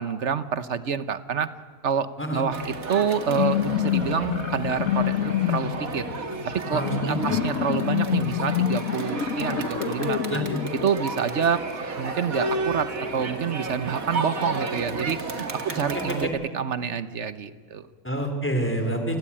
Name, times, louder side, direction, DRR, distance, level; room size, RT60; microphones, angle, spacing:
voice 1, 0.0-1.5 1.8-6.1 6.5-10.4 10.8-11.6 12.0-17.9, right 7 dB, 55° right, 13 dB, 1.2 m, -28 dB
Crowd, 2.5-16.2, right 3 dB, 75° right, 2.4 m, -33 dB
sound 1, 3.2-11.0, left 10 dB, 65° left, 1.4 m, -27 dB
voice 2, 6.7-7.4 10.3-10.6 15.7-15.8 16.2-16.3 18.0-19.2, right 1 dB, 10° left, 5 dB, 3.7 m, -27 dB
29.5 x 18.5 x 8.7 m, 1.5 s
omnidirectional pair, 1.5 m